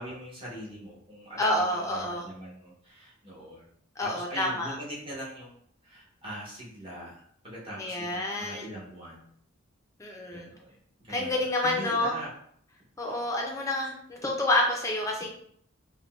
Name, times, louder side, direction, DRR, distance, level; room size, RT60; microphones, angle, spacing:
voice 1, 0.0-3.7 4.0-5.6 5.8-9.2 10.3-10.8 11.0-12.3 13.1-13.2, equal, 25° right, -5 dB, 0.9 m, -42 dB
voice 2, 1.4-2.3 4.0-4.7 7.8-8.7 10.0-10.5 11.1-12.2 13.0-15.3, left 1 dB, 15° left, 0 dB, 0.5 m, -28 dB
3.7 x 2.2 x 2.3 m, 0.65 s
head